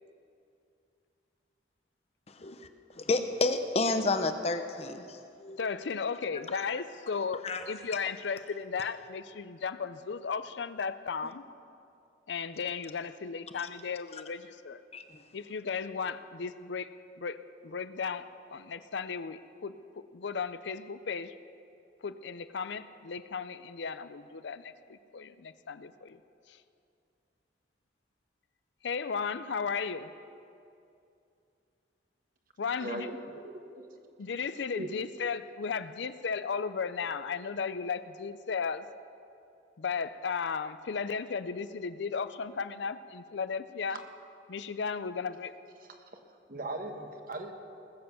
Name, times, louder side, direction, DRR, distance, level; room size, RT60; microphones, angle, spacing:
voice 1, 3.0-5.0 5.4-5.6 7.4-7.6 14.9-15.0, left 3 dB, 35° left, 8 dB, 0.8 m, -29 dB
voice 2, 5.6-11.4 12.3-14.8 15.3-16.9 17.2-21.3 22.0-26.2 26.5-26.6 28.8-30.1 32.6-33.1 34.2-38.9 39.8-44.0 44.5-45.5, left 5 dB, 70° left, 13 dB, 0.5 m, -35 dB
voice 3, 32.8-33.9 34.7-34.9 46.5-47.5, right 1 dB, 50° right, 4 dB, 1.3 m, -39 dB
20.0 x 7.8 x 6.8 m, 2.5 s
head